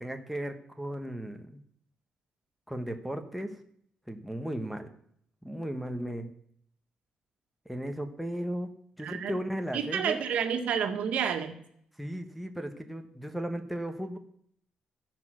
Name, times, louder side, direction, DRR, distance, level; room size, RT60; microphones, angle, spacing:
voice 1, 0.0-1.6 2.7-3.6 4.1-4.9 5.4-6.3 7.6-8.7 9.0-10.2 12.0-14.2, right 1 dB, ahead, 4 dB, 1.2 m, -35 dB
voice 2, 9.0-9.3 9.7-11.6, right 7 dB, 75° right, 6 dB, 1.8 m, -30 dB
13.5 x 10.5 x 6.2 m, 0.66 s
cardioid pair, 155°, 2 cm